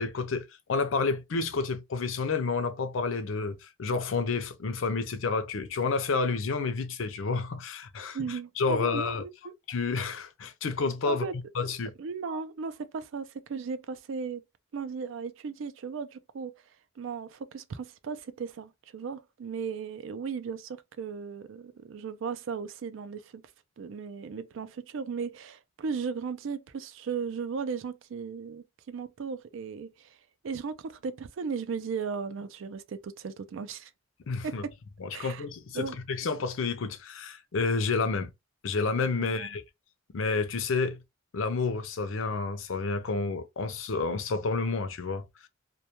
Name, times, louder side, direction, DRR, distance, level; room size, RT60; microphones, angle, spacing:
voice 1, 0.0-9.2 9.7-11.2 11.5-11.9 12.3-12.4 34.3-34.6 35.0-38.3 38.6-39.6 40.1-41.0 41.3-45.2, left 4 dB, 70° left, 0.5 m, -30 dB
voice 2, 8.1-9.3 11.1-11.3 12.0-14.4 14.7-16.5 17.0-23.4 23.8-30.2 30.4-33.9 34.4-34.7 35.1-35.4 35.7-36.0 39.2-39.5, right 5 dB, 65° right, 0.4 m, -36 dB
2.2 x 2.2 x 2.8 m
head